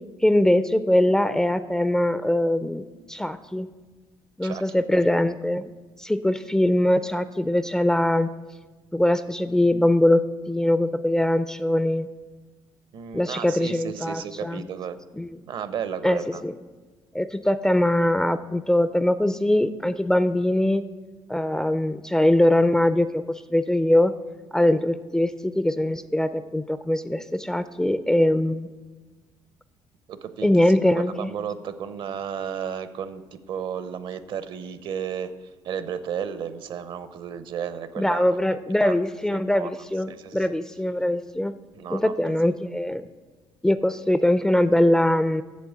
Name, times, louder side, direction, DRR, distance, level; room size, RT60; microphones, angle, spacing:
voice 1, 0.2-3.7 4.4-5.7 6.0-8.3 8.9-12.1 13.1-14.7 15.2-15.3 16.0-16.5 17.1-20.8 21.3-24.1 24.5-28.7 30.4-31.3 38.0-41.5 41.9-43.0 43.6-45.4, left 1 dB, 5° left, 12 dB, 0.4 m, -22 dB
voice 2, 4.4-4.8 12.9-15.0 15.5-16.4 30.1-35.3 35.6-38.4 38.8-38.9 39.3-39.7 40.1-40.5 41.7-42.4, right 8 dB, 60° right, 12 dB, 0.7 m, -33 dB
8.4 x 6.9 x 8.0 m, 1.3 s
cardioid pair, 110°, 9 cm